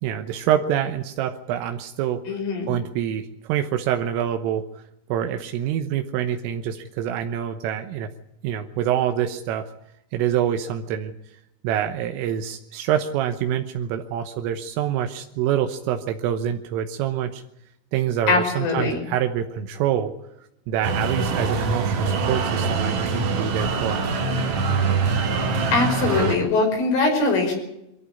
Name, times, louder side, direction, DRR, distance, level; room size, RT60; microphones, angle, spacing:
voice 1, 0.0-2.3 2.7-4.8 5.1-8.1 8.4-9.7 10.1-11.1 11.6-17.4 17.9-20.1 20.7-24.0, right 10 dB, 80° right, 6 dB, 3.7 m, -26 dB
voice 2, 2.3-2.7 18.3-19.0 25.7-27.5, left 3 dB, 75° left, 2 dB, 7.8 m, -22 dB
sound 1, 20.8-26.4, right 4 dB, 50° right, 2.7 m, -24 dB
23.5 x 14.0 x 9.7 m, 0.84 s
omnidirectional pair, 5.8 m